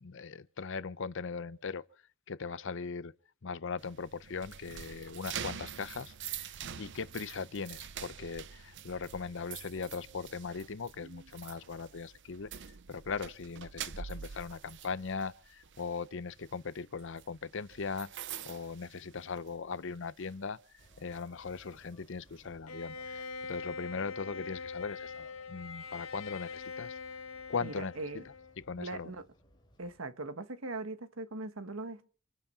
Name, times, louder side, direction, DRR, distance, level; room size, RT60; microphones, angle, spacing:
voice 1, 0.0-1.8 2.3-3.1 3.4-12.5 12.9-18.1 18.5-20.6 21.0-27.0 27.5-27.9 28.7-29.1, left 5 dB, 65° left, 0.7 m, -39 dB
sound 1, 3.8-19.7 20.0-20.3 20.8-22.5, right 8 dB, 60° right, 0.7 m, -46 dB
sound 2, 20.8-30.0, equal, 20° left, 3.5 m, -64 dB
Bowed string instrument, 22.7-28.7, left 4 dB, 85° left, 1.7 m, -43 dB
voice 2, 27.6-28.3 28.8-29.3 29.8-32.1, right 2 dB, 80° right, 1.4 m, -40 dB
26.5 x 9.4 x 5.6 m
head